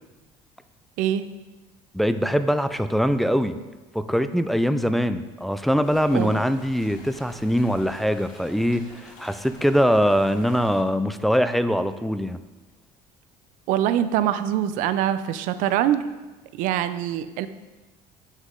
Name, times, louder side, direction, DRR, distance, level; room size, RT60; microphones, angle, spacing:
voice 1, 1.9-3.6 3.9-12.4, equal, ahead, 10 dB, 0.3 m, -22 dB
sound 1, 5.8-10.8, left 2 dB, 75° left, 2.5 m, -48 dB
voice 2, 13.7-16.1 16.6-17.5, right 11 dB, 70° right, 12 dB, 0.5 m, -24 dB
7.5 x 6.3 x 3.7 m, 1.2 s
cardioid pair, 120°, 14 cm